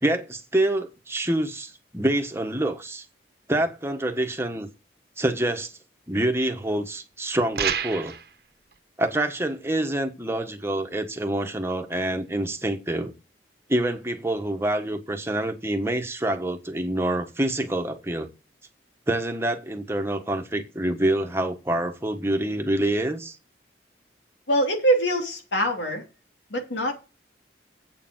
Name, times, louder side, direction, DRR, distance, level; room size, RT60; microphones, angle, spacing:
voice 1, 0.0-3.0 3.5-4.7 5.2-5.7 6.1-8.1 9.0-13.1 13.7-18.3 19.1-23.4, right 1 dB, 15° right, 1.3 m, -26 dB
sound 1, 7.6-8.3, right 7 dB, 60° right, 1.2 m, -27 dB
voice 2, 24.5-26.0 26.5-27.0, right 1 dB, 85° left, 3.2 m, -23 dB
8.3 x 6.8 x 7.8 m
head